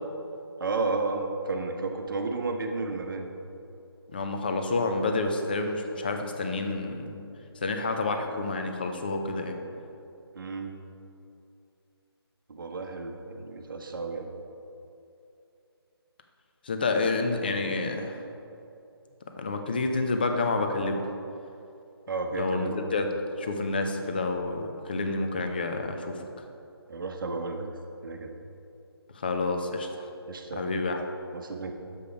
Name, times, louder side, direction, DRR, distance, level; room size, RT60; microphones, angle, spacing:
voice 1, 0.6-3.3 10.3-10.7 12.5-14.3 22.1-22.9 26.9-27.7 28.0-28.3 30.3-30.8 31.3-31.7, right 3 dB, 55° right, 4 dB, 0.8 m, -32 dB
voice 2, 4.1-7.3 7.6-9.6 16.6-18.1 19.4-21.0 22.4-23.1 23.4-26.2 29.2-30.1 30.5-31.0, left 3 dB, 20° left, 5 dB, 0.4 m, -29 dB
7.0 x 5.0 x 5.1 m, 2.7 s
figure-of-eight pair, 165°, 13 cm